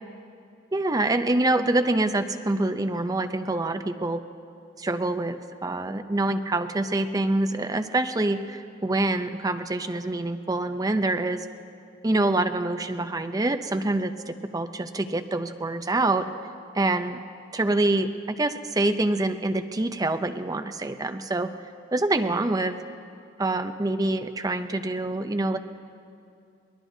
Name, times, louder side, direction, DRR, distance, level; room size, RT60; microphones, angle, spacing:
voice 1, 0.7-4.2 4.8-11.5 12.0-16.3 16.7-17.2 17.5-21.5 21.9-22.8 23.4-25.6, right 2 dB, 20° right, 8 dB, 0.5 m, -26 dB
23.0 x 19.0 x 2.7 m, 2.4 s
head